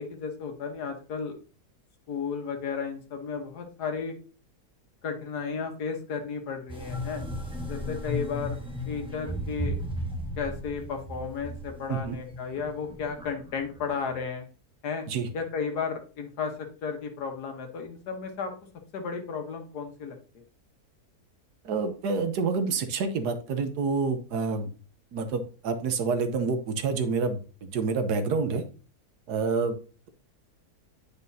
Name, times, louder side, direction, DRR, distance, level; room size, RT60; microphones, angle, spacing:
voice 1, 0.0-1.3 2.1-4.1 5.0-7.2 7.7-8.6 8.9-9.8 10.4-14.4 14.8-15.1 15.3-18.5 18.9-20.4, left 5 dB, 80° left, 4 dB, 1.7 m, -33 dB
sound 1, 6.7-14.2, left 1 dB, 5° right, 1.0 m, -35 dB
voice 2, 21.6-24.7 25.1-28.6 29.3-29.8, right 4 dB, 85° right, 9 dB, 1.4 m, -28 dB
9.3 x 5.2 x 2.7 m, 0.37 s
omnidirectional pair, 1.7 m